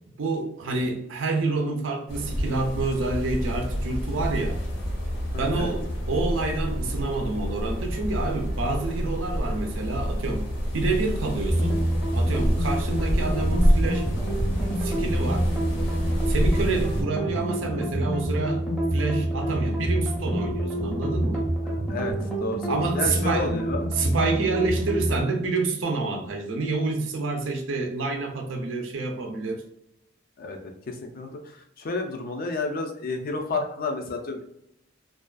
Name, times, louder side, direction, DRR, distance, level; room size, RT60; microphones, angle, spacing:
voice 1, 0.2-4.6 5.4-10.4 10.7-11.9 12.1-14.1 14.8-15.5 16.3-18.6 18.9-21.4 22.7-23.5 23.9-29.6, right 3 dB, 80° right, 4 dB, 0.5 m, -28 dB
sound 1, 2.1-17.0, equal, 85° left, 1.0 m, -28 dB
voice 2, 5.3-5.7 16.5-16.6 21.9-22.1 22.4-23.9 30.4-30.6 30.9-34.4, left 3 dB, 45° left, 4 dB, 0.4 m, -31 dB
sound 2, 11.5-25.2, right 1 dB, ahead, 0.6 m, -27 dB
2.4 x 2.3 x 2.3 m, 0.80 s
head